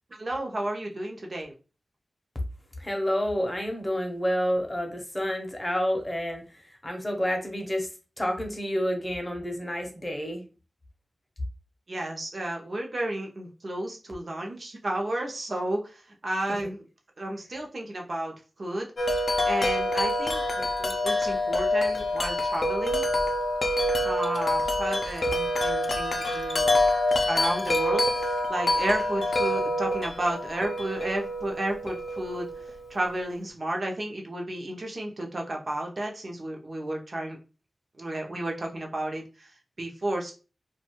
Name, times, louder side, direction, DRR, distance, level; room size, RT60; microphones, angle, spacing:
voice 1, 0.1-1.5 11.9-16.9 17.2-18.9 19.4-23.1 24.0-26.8 27.2-37.4 38.0-39.5 39.8-40.3, right 1 dB, 50° right, 0 dB, 0.6 m, -32 dB
voice 2, 2.8-6.4 6.8-7.9 8.2-10.4 16.6-16.7, equal, 20° left, 3 dB, 0.7 m, -29 dB
Wind chime, 19.0-32.9, left 1 dB, 60° left, 0.4 m, -26 dB
2.4 x 2.3 x 2.9 m, 0.34 s
wide cardioid pair, 100°, 0 cm